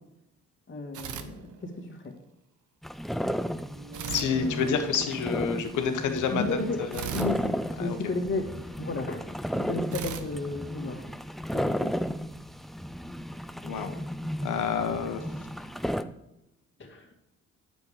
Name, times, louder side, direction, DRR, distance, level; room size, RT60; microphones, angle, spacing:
voice 1, 0.7-2.1 6.3-6.8 7.1-7.5 7.8-8.5 8.8-9.3 9.5-11.1 11.5-12.0 16.8-17.1, left 2 dB, 40° left, 3 dB, 2.3 m, -33 dB
sound 1, 0.9-2.1 3.9-5.3 6.9-8.6 9.9-11.5, right 8 dB, 75° right, 0.9 m, -40 dB
sound 2, 2.8-16.0, equal, ahead, 0.4 m, -34 dB
sound 3, 3.6-9.6, right 3 dB, 35° right, 2.7 m, -47 dB
voice 2, 4.1-6.4 6.9-7.1 7.8-8.0 13.6-14.0 14.4-15.2, left 6 dB, 80° left, 7 dB, 1.4 m, -28 dB
9.5 x 7.2 x 5.1 m, 0.87 s
cardioid pair, 90°, 30 cm